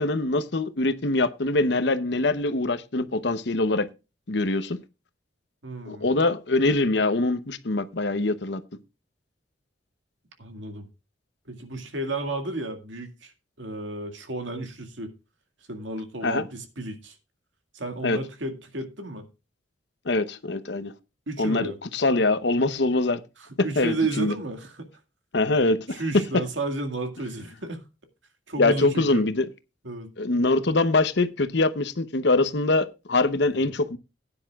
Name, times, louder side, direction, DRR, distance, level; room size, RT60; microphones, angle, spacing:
voice 1, 0.0-3.9 4.3-4.8 5.9-8.6 16.2-16.5 18.0-18.2 20.1-20.9 21.4-23.2 23.6-24.3 25.3-26.4 28.6-29.5 30.2-34.0, left 2 dB, 60° left, 0.8 m, -23 dB
voice 2, 5.6-6.1 10.4-10.9 11.5-13.3 13.6-15.1 15.7-17.2 17.7-19.3 21.3-21.8 23.6-24.9 25.9-27.8 28.5-29.2 29.8-30.1, right 2 dB, 75° right, 2.1 m, -32 dB
15.5 x 9.9 x 2.4 m
head